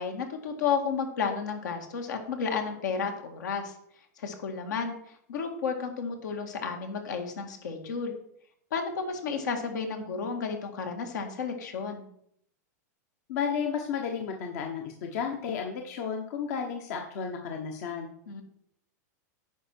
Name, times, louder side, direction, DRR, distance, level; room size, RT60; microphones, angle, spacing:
voice 1, 0.0-3.7 4.2-8.1 8.7-12.1 18.3-18.4, left 5 dB, 85° left, 4 dB, 1.9 m, -32 dB
voice 2, 13.3-18.1, left 6 dB, 65° left, 3 dB, 1.2 m, -32 dB
9.9 x 5.9 x 4.5 m, 0.71 s
supercardioid pair, 130°, 9 cm